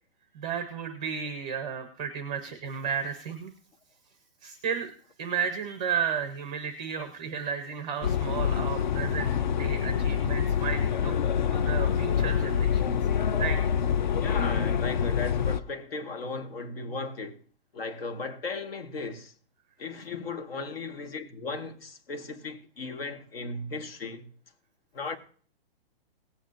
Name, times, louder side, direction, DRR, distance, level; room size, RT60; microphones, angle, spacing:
voice 1, 0.3-3.5 4.4-4.9 5.2-9.3 9.6-11.1 11.5-13.0 13.4-13.6, right 7 dB, 5° right, 0.5 m, -33 dB
sound 1, 8.0-15.6, left 7 dB, 50° left, 0.5 m, -26 dB
voice 2, 14.2-17.4 17.7-19.3 19.8-24.3 24.9-25.2, left 3 dB, 75° left, 2.1 m, -36 dB
18.0 x 8.8 x 2.8 m
hypercardioid pair, 180°, 29 cm